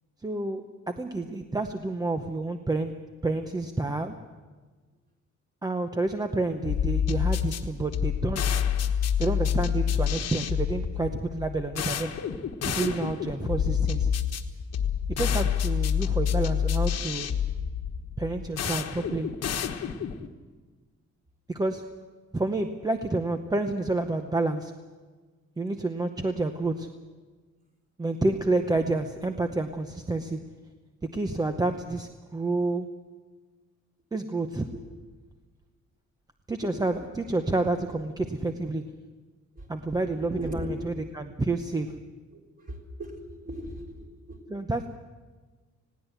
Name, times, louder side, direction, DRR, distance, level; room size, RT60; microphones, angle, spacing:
voice 1, 0.2-2.9 3.2-4.1 5.6-8.6 9.2-12.1 12.7-14.1 15.1-17.3 18.2-19.3 21.5-21.8 22.3-24.7 25.6-26.9 28.0-30.4 31.1-32.9 34.1-34.7 36.5-38.8 39.7-42.0 44.5-44.9, right 2 dB, 15° right, 6 dB, 0.8 m, -29 dB
sound 1, 6.7-20.3, left 8 dB, 60° left, 1.4 m, -28 dB
voice 2, 40.0-40.8 42.3-44.4, equal, 30° right, 0 dB, 3.9 m, -39 dB
20.0 x 17.0 x 8.0 m, 1.4 s
cardioid pair, 165°, 29 cm